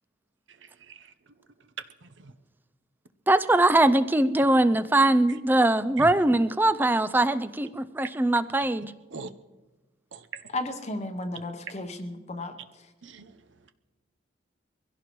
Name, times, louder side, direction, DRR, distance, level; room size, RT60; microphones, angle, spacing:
voice 1, 0.5-1.1 2.0-2.3 6.0-6.1 9.1-9.3 10.1-10.5 13.0-13.4, right 4 dB, 70° right, 9 dB, 0.8 m, -42 dB
voice 2, 3.3-8.9, right 1 dB, 10° right, 13 dB, 0.4 m, -22 dB
voice 3, 10.5-12.9, left 2 dB, 35° left, 6 dB, 0.9 m, -34 dB
23.5 x 16.0 x 3.1 m, 1.2 s
head